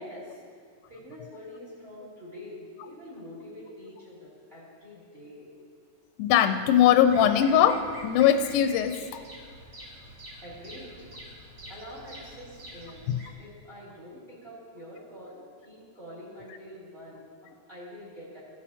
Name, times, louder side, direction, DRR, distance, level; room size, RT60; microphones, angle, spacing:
voice 1, 0.0-5.5 10.4-11.1 11.7-13.1 13.4-18.4, left 1 dB, 20° right, -7 dB, 2.9 m, -45 dB
voice 2, 6.2-9.0 13.1-13.2, left 9 dB, 80° left, 7 dB, 2.0 m, -21 dB
Bird vocalization bird call bird song, 7.0-13.3, equal, 85° right, 0.7 m, -46 dB
16.0 x 6.1 x 4.2 m, 2.1 s
omnidirectional pair, 3.6 m